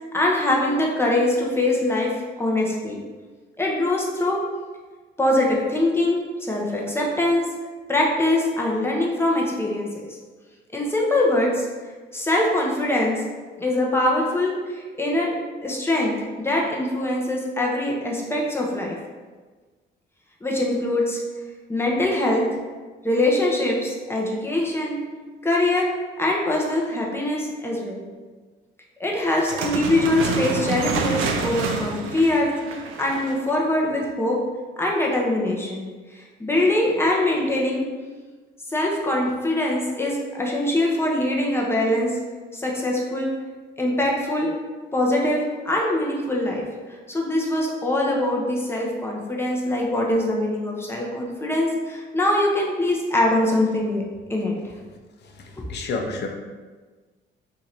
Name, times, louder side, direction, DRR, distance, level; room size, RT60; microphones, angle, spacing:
voice 1, 0.1-3.0 3.6-4.4 5.2-7.5 7.9-9.9 10.7-11.7 12.1-13.2 13.6-19.0 20.4-21.2 21.7-22.5 23.0-25.0 25.4-25.9 26.2-28.0 29.0-34.4 34.8-35.8 36.1-37.9 38.7-42.2 42.5-43.3 43.8-44.5 44.9-46.6 47.1-54.0 54.3-54.5, left 1 dB, 10° left, -2 dB, 0.8 m, -23 dB
sound 1, 29.3-33.5, right 5 dB, 90° right, 0.4 m, -28 dB
voice 2, 55.2-56.3, left 3 dB, 60° left, 3 dB, 0.6 m, -30 dB
2.8 x 2.6 x 4.3 m, 1.4 s
cardioid pair, 90°, 20 cm